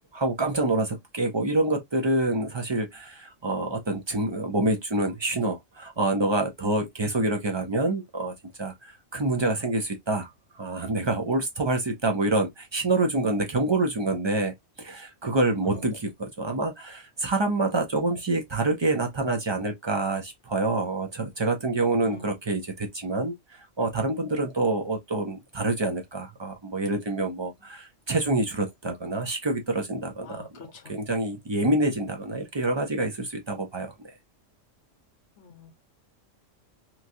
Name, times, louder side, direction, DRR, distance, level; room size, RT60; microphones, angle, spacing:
voice 1, 0.1-8.3 8.6-10.3 10.5-30.4 30.9-33.9, right 2 dB, 50° right, 0.3 m, -27 dB
voice 2, 22.0-22.3 30.2-30.9 35.4-35.8, left 5 dB, 65° left, 1.1 m, -45 dB
3.0 x 2.4 x 2.5 m
omnidirectional pair, 1.3 m